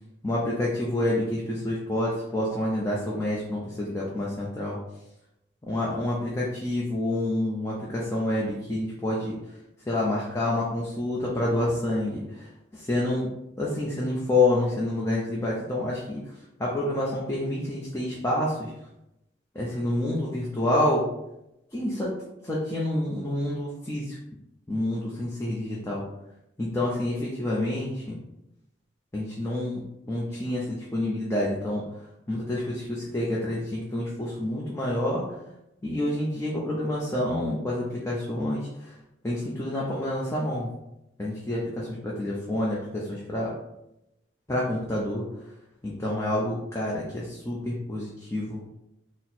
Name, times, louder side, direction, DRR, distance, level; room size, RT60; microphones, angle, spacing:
voice 1, 0.2-4.8 5.7-9.4 9.9-13.3 13.6-16.2 16.6-18.7 19.5-21.1 21.7-22.1 22.4-24.2 24.7-26.0 26.6-28.2 29.1-31.8 32.3-35.2 35.8-38.9 39.2-40.7 41.2-43.5 44.5-45.3 45.8-48.6, left 1 dB, 15° left, -5 dB, 0.5 m, -28 dB
4.2 x 2.0 x 4.2 m, 0.88 s
head